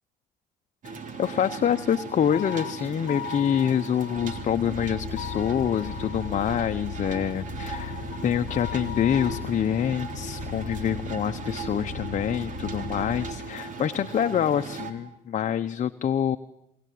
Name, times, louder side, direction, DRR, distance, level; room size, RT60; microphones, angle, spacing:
sound 1, 0.8-14.9, right 4 dB, 50° right, 3.6 m, -38 dB
voice 1, 1.2-16.4, left 9 dB, 45° left, 8 dB, 0.9 m, -26 dB
sound 2, 2.3-4.4 5.2-6.4 7.7-9.9, left 14 dB, 80° left, 1.1 m, -39 dB
sound 3, 4.3-13.3, left 4 dB, 30° right, 6.8 m, -37 dB
27.0 x 23.0 x 9.4 m, 0.86 s
supercardioid pair, 85°, 18 cm